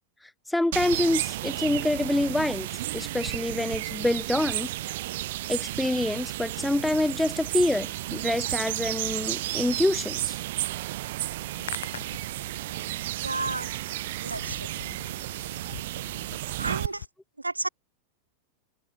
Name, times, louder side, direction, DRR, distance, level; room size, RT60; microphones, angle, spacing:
voice 1, 0.5-2.7 2.9-4.7 5.5-10.4, left 1 dB, 5° left, 1.0 m, -26 dB
sound 1, 0.7-16.9, right 16 dB, 55° right, 0.6 m, -32 dB
sound 2, 2.8-3.8 5.5-6.5 7.7-9.3 10.5-12.2 13.3-15.4, right 15 dB, 35° right, 4.7 m, -56 dB
Hands, 11.4-17.1, left 10 dB, 65° left, 1.8 m, -45 dB
voice 2, 13.2-13.7 14.2-14.7 16.6-17.0 17.4-17.7, right 2 dB, 80° right, 1.2 m, -31 dB
figure-of-eight pair, 90°, 0 cm